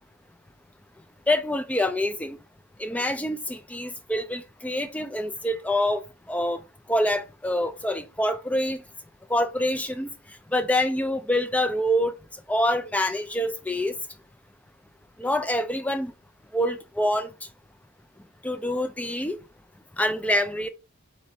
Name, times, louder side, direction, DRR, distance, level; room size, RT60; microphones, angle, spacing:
voice 1, 1.3-2.4 2.8-6.0 6.3-6.6 6.9-8.8 9.3-10.1 10.5-12.1 12.5-13.9 15.2-16.1 16.5-17.3 18.4-19.4 20.0-20.7, left 1 dB, 5° left, 0.3 m, -26 dB
4.2 x 4.1 x 2.7 m
head